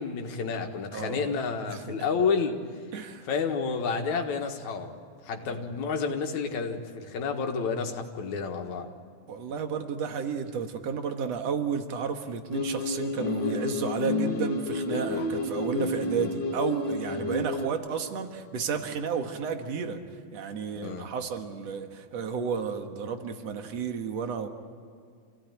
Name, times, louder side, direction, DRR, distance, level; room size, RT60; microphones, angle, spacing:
voice 1, 0.0-2.6 3.3-5.0 5.2-8.9 17.1-17.4 20.8-21.1, left 5 dB, 75° left, 4 dB, 2.9 m, -30 dB
voice 2, 0.9-2.1 2.9-3.3 5.4-5.6 9.3-20.0 20.3-24.5, right 6 dB, 65° right, 6 dB, 2.6 m, -32 dB
sound 1, 12.5-17.7, left 3 dB, 50° left, 1.7 m, -30 dB
27.5 x 17.0 x 9.1 m, 2.2 s
omnidirectional pair, 3.3 m